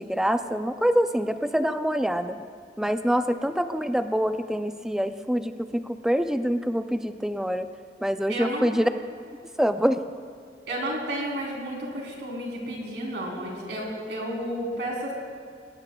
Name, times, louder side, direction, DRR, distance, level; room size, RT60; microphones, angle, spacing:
voice 1, 0.0-2.4 2.8-7.7 8.0-8.9 9.6-10.0, equal, 5° right, 9 dB, 0.4 m, -25 dB
voice 2, 8.3-8.8 10.7-15.1, right 1 dB, 70° right, -2 dB, 3.5 m, -32 dB
20.5 x 17.5 x 2.3 m, 2.3 s
head